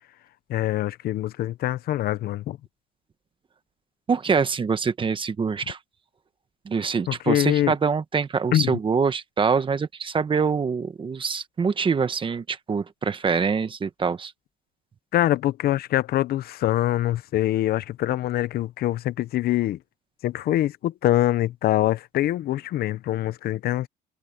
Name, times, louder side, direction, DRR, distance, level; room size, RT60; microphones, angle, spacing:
voice 1, 0.5-2.6 7.1-7.7 8.5-8.8 15.1-19.8 20.2-23.9, left 14 dB, 65° left, 0.8 m, -24 dB
voice 2, 4.1-5.8 6.6-14.3, right 5 dB, 30° right, 1.3 m, -25 dB
cardioid pair, 110°, 17 cm